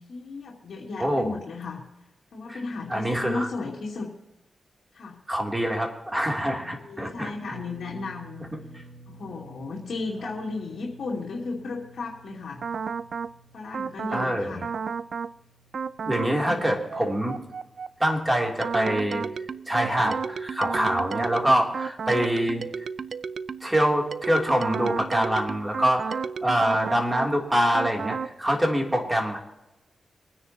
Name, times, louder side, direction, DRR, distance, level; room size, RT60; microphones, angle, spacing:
voice 1, 0.1-1.8 2.3-4.1 4.9-5.2 6.4-8.4 9.1-12.6 13.5-14.7 16.4-16.7, left 3 dB, 75° left, -4 dB, 2.7 m, -35 dB
voice 2, 1.0-1.3 2.5-2.6 2.9-3.5 5.3-7.3 14.1-14.5 16.0-17.3 18.0-19.2 19.7-22.6 23.6-29.4, equal, 10° right, 0 dB, 2.9 m, -25 dB
sound 1, 7.5-19.7 20.0-20.2 21.9-22.0, right 2 dB, 30° right, 4.5 m, -52 dB
sound 2, 12.6-13.3 13.7-14.3 14.6-15.3 15.7-16.3 16.6-23.7 24.1-27.3 27.7-28.3, right 6 dB, 65° right, 0.5 m, -32 dB
25.0 x 9.9 x 2.9 m, 0.99 s
cardioid pair, 80°, 0 cm